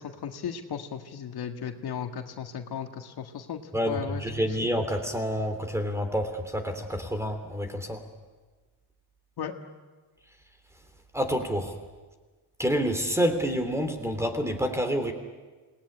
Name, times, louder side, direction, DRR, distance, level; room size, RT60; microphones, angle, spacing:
voice 1, 0.0-3.6 3.9-4.2 4.6-4.7 9.4-9.5, left 8 dB, 60° left, 5 dB, 1.9 m, -36 dB
voice 2, 3.7-8.0 11.1-11.8 12.6-15.1, equal, 5° right, 7 dB, 3.1 m, -28 dB
27.0 x 19.5 x 9.8 m, 1.3 s
cardioid pair, 135°, 42 cm